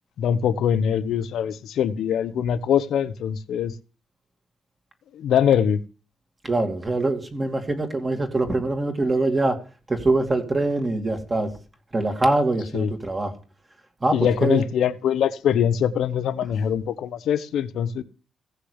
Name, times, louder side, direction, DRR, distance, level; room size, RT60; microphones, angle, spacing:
voice 1, 0.2-3.7 5.1-5.8 12.7-12.9 14.1-18.0, left 8 dB, 65° left, 1.0 m, -23 dB
voice 2, 6.4-9.6 9.9-11.5 11.9-13.3 14.0-14.6, right 2 dB, 15° right, 2.4 m, -23 dB
16.5 x 6.7 x 8.1 m
cardioid pair, 170°, 0 cm